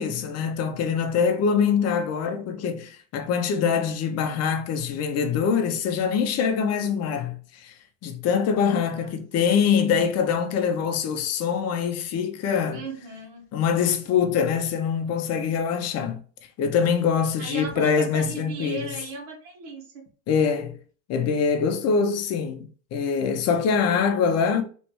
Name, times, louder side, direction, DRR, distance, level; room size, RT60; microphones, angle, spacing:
voice 1, 0.0-7.7 8.0-12.8 13.5-16.2 16.6-18.9 20.3-20.8 21.1-24.6, left 6 dB, 40° left, 0.6 m, -24 dB
voice 2, 8.8-9.1 12.7-13.4 17.4-19.8, right 3 dB, 85° right, 1.5 m, -36 dB
3.3 x 3.1 x 3.0 m
supercardioid pair, 135°, 40 cm